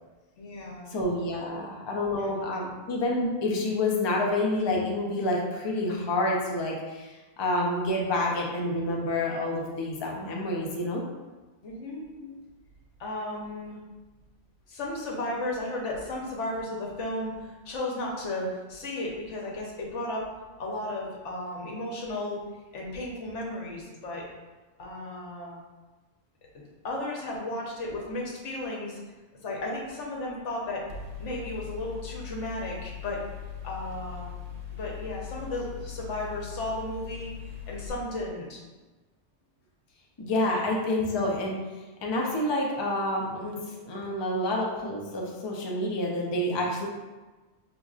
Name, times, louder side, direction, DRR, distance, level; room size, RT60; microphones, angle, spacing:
voice 1, 0.4-0.9 2.0-2.6 11.6-12.3 13.0-13.8 14.7-20.3 20.6-22.4 22.7-24.2 24.8-25.6 26.5-29.0 29.4-30.8 31.2-33.2 33.6-34.3 34.7-37.3 37.7-38.6, left 1 dB, 75° left, -2 dB, 1.1 m, -34 dB
voice 2, 0.9-11.0 40.2-41.6 42.0-46.9, left 1 dB, 35° left, -1 dB, 0.4 m, -28 dB
Mechanical fan, 30.9-37.9, left 9 dB, 60° right, 0.4 m, -40 dB
5.1 x 2.8 x 2.4 m, 1.2 s
omnidirectional pair, 1.2 m